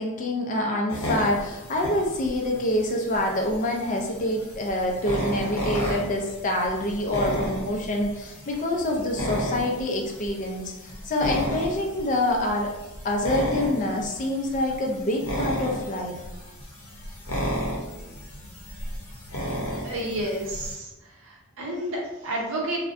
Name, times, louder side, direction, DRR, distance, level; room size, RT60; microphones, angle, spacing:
voice 1, 0.0-12.7 13.0-16.1, left 1 dB, 35° left, 1 dB, 0.3 m, -26 dB
sound 1, 0.9-20.7, equal, 75° left, 0.7 m, -33 dB
voice 2, 19.8-20.9 21.2-22.8, right 1 dB, 60° right, -2 dB, 0.6 m, -30 dB
2.5 x 2.1 x 2.4 m, 1.0 s
head